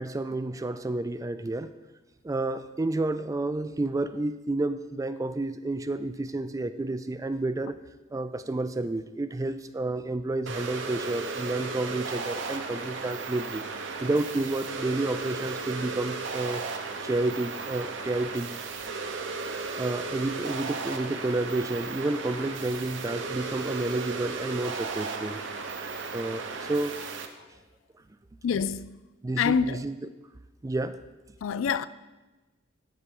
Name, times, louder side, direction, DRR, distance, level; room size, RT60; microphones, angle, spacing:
voice 1, 0.0-1.7 2.2-7.8 8.1-13.6 14.0-16.7 17.0-18.5 19.8-25.4 26.1-26.9 29.2-30.0 30.6-31.0, right 2 dB, 15° right, 0.3 m, -30 dB
sound 1, 10.5-27.3, right 4 dB, 65° right, 0.8 m, -35 dB
voice 2, 28.4-29.0 29.4-29.8 31.4-31.9, left 6 dB, 85° left, 0.4 m, -26 dB
13.0 x 4.4 x 5.3 m
head